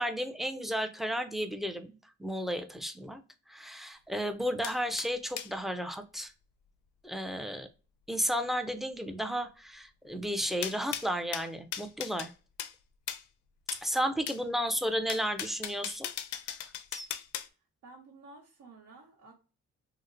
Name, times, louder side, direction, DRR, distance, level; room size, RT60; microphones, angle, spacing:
voice 1, 0.0-3.2 3.5-6.3 7.0-7.7 8.1-12.3 13.8-16.1 16.9-17.1, equal, ahead, 0.4 m, -33 dB
sound 1, 4.6-5.5 10.6-12.3 12.6-12.7 13.1-13.2 13.7-13.8 14.3-14.4 15.1-17.5, left 10 dB, 75° left, 0.5 m, -38 dB
voice 2, 17.8-19.3, right 3 dB, 75° right, 1.1 m, -53 dB
2.9 x 2.0 x 3.7 m
cardioid pair, 90°, 30 cm